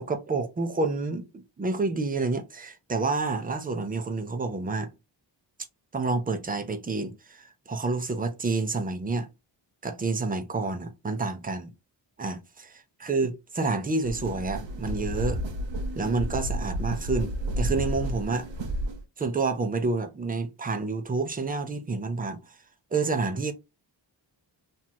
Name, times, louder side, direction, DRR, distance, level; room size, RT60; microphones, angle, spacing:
voice 1, 0.0-4.9 5.9-9.3 9.8-11.7 12.2-12.4 13.0-15.4 16.0-18.5 19.2-22.6 22.9-23.5, right 3 dB, 20° right, 0.5 m, -29 dB
sound 1, 14.0-19.0, right 1 dB, 75° right, 0.9 m, -31 dB
3.1 x 2.9 x 2.2 m
wide cardioid pair, 130°, 44 cm